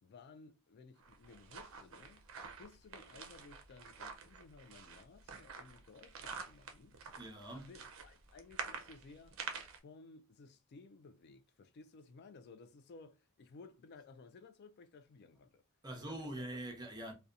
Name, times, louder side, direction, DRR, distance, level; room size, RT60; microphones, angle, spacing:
voice 1, 0.0-2.2 2.6-7.0 7.5-9.4 9.7-15.6 16.0-16.6, left 4 dB, 50° left, 0.3 m, -57 dB
sound 1, 1.0-9.8, right 5 dB, 65° right, 0.5 m, -48 dB
voice 2, 7.2-7.7 15.8-17.1, right 1 dB, 20° right, 0.6 m, -44 dB
2.7 x 2.1 x 2.3 m
head